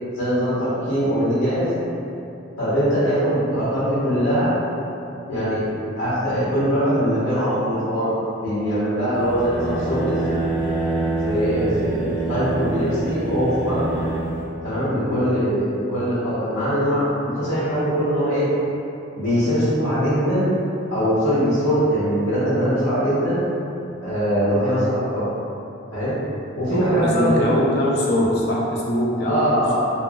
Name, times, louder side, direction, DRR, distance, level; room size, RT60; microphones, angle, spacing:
voice 1, 0.1-1.7 2.6-4.5 5.3-8.1 8.4-10.1 11.2-13.9 14.6-17.0 17.4-18.5 19.1-20.5 20.9-23.4 24.0-25.3 25.9-26.2 26.6-27.5 29.2-29.8, equal, 90° left, -12 dB, 0.8 m, -21 dB
sound 1, 9.1-14.4, right 2 dB, 25° left, 0.8 m, -26 dB
voice 2, 26.7-29.8, left 1 dB, 55° left, -5 dB, 0.4 m, -23 dB
2.9 x 2.5 x 2.2 m, 2.8 s
head